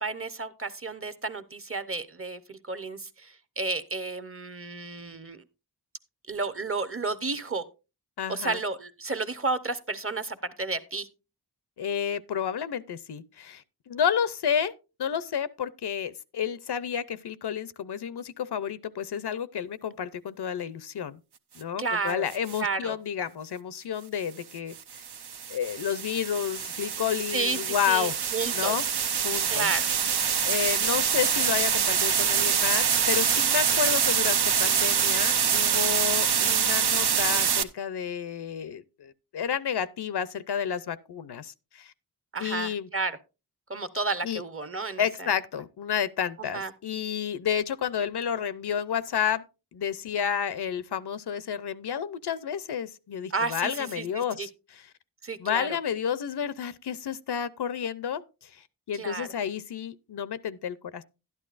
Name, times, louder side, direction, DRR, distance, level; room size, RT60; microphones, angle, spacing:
voice 1, 0.0-5.4 6.3-7.6 8.3-11.1 21.8-22.3 22.6-23.0 27.3-28.9 29.5-29.9 42.3-43.2 43.7-45.3 46.5-46.7 53.3-54.5 55.2-55.7 58.9-59.3, right 3 dB, 35° right, 0.8 m, -32 dB
voice 2, 8.2-8.6 11.8-14.7 15.0-21.2 21.5-25.0 25.5-28.2 28.5-28.8 29.2-29.7 30.4-41.9 42.4-42.9 44.2-44.4 45.0-49.4 49.7-54.5 55.4-61.0, left 8 dB, 75° left, 0.6 m, -31 dB
sound 1, 22.3-22.6 24.7-37.6, right 7 dB, 75° right, 0.7 m, -25 dB
12.0 x 10.5 x 2.5 m
wide cardioid pair, 75°, 40 cm